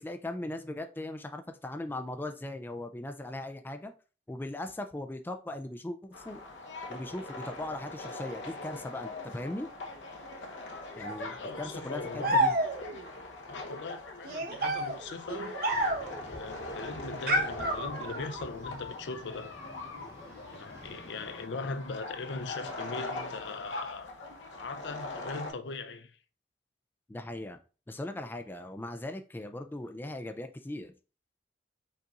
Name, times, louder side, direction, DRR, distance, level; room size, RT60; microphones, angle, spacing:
voice 1, 0.0-3.9 4.3-6.4 6.9-9.7 10.9-12.5 27.1-27.6 27.9-30.9, left 1 dB, 10° left, 0.3 m, -39 dB
sound 1, 6.1-25.5, left 2 dB, 85° left, 1.0 m, -42 dB
voice 2, 10.8-12.5 13.5-15.6 16.2-19.5 20.5-24.1 24.6-26.2, left 3 dB, 70° left, 0.5 m, -40 dB
sound 2, 12.2-13.1 14.2-16.2 17.3-18.4, right 1 dB, 55° right, 0.9 m, -29 dB
sound 3, 15.7-21.5, left 1 dB, 15° right, 1.0 m, -51 dB
5.3 x 4.0 x 2.4 m
head